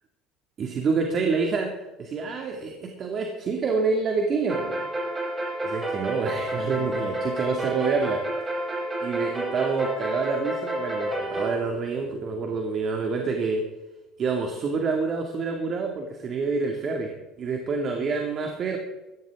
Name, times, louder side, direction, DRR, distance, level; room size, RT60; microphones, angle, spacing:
voice 1, 0.6-1.7 2.0-4.9 5.6-8.2 9.0-13.6 14.2-18.8, right 4 dB, 45° right, 2 dB, 2.3 m, -27 dB
sound 1, 4.5-11.6, right 1 dB, 25° right, 6.3 m, -30 dB
16.5 x 14.0 x 3.8 m, 1.0 s
supercardioid pair, 90°, 0 cm